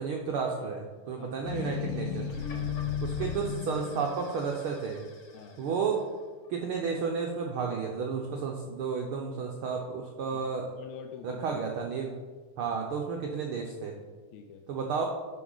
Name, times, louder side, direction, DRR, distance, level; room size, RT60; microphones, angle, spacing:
voice 1, 0.0-2.3 3.0-5.0 5.6-6.0 6.5-10.7 11.2-12.1 12.6-13.9 14.7-15.1, right 5 dB, 80° right, 1 dB, 1.2 m, -32 dB
sound 1, 1.4-5.8, left 7 dB, 50° left, 1.1 m, -35 dB
voice 2, 2.5-2.9 5.3-5.6 10.3-11.6 12.6-12.8 14.3-14.7, left 8 dB, 80° left, 4 dB, 1.9 m, -47 dB
12.0 x 5.5 x 3.9 m, 1.4 s
omnidirectional pair, 3.3 m